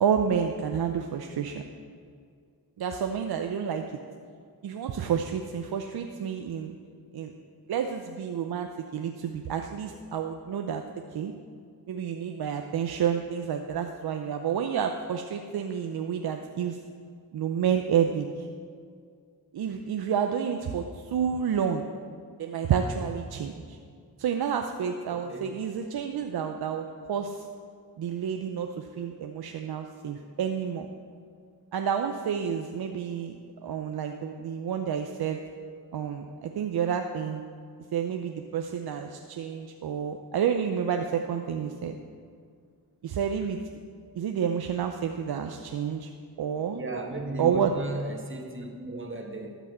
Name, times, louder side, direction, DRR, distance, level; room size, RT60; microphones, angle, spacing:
voice 1, 0.0-1.6 2.8-3.9 4.6-6.7 7.1-7.3 7.7-10.8 11.1-11.3 11.9-16.8 17.3-18.5 19.5-21.9 22.4-23.8 24.2-27.4 28.0-30.9 31.7-35.4 35.9-37.4 37.9-42.0 43.0-43.8 44.2-46.1 46.4-46.8 47.4-47.7, right 7 dB, 70° right, 5 dB, 0.7 m, -29 dB
voice 2, 25.1-25.5 46.7-49.6, right 2 dB, 30° right, 2 dB, 1.7 m, -35 dB
13.0 x 6.2 x 6.8 m, 2.2 s
cardioid pair, 75°, 39 cm